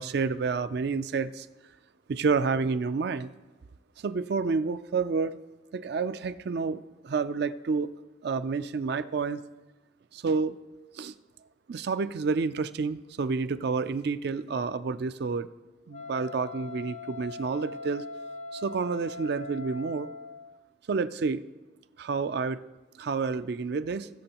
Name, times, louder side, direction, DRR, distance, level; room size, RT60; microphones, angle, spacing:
voice 1, 0.0-1.5 2.1-3.3 4.0-5.4 5.7-7.9 8.2-9.4 10.1-10.6 10.9-11.1 11.7-15.5 15.9-18.0 18.5-20.1 20.9-21.4 22.0-22.6 23.0-24.1, right 4 dB, 55° right, 12 dB, 0.4 m, -29 dB
Wind instrument woodwind instrument, 15.9-20.6, left 3 dB, 35° left, 0.5 m, -41 dB
20.0 x 7.0 x 2.9 m, 1.2 s
head